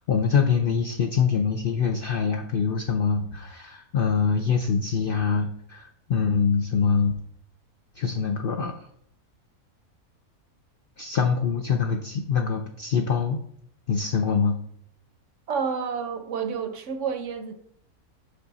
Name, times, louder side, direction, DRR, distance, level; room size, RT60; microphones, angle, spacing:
voice 1, 0.1-7.1 8.0-8.7 11.0-13.4 13.9-14.6, left 6 dB, 70° left, 3 dB, 0.5 m, -24 dB
voice 2, 15.5-17.5, right 6 dB, 65° right, 8 dB, 0.9 m, -29 dB
5.7 x 5.3 x 4.0 m, 0.69 s
omnidirectional pair, 1.5 m